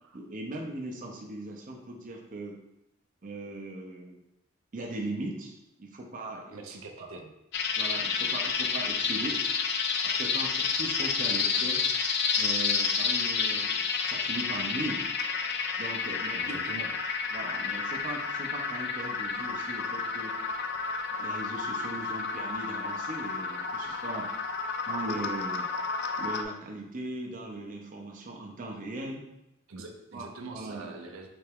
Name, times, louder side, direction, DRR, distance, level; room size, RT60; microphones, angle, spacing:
voice 1, 0.1-2.5 3.2-4.2 4.7-6.6 7.0-7.1 7.8-9.4 10.0-11.8 12.4-15.0 15.8-16.6 17.3-20.3 21.1-24.3 24.9-25.7 26.2-29.2 30.1-30.9, right 2 dB, 40° right, 0 dB, 0.5 m, -39 dB
voice 2, 6.5-7.3 16.4-17.0 29.7-31.3, right 3 dB, 90° right, 3 dB, 0.5 m, -44 dB
sound 1, 7.5-26.4, left 5 dB, 55° left, 0.3 m, -30 dB
3.4 x 3.3 x 3.4 m, 0.87 s
head